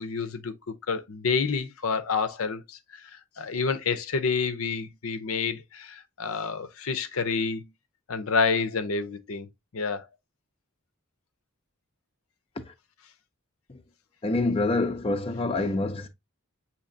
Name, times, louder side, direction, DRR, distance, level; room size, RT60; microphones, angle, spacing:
voice 1, 0.0-7.7 8.1-9.5 9.7-10.1, left 5 dB, 75° left, 0.6 m, -29 dB
voice 2, 14.2-16.1, left 2 dB, 25° left, 0.5 m, -26 dB
7.0 x 2.9 x 2.6 m
head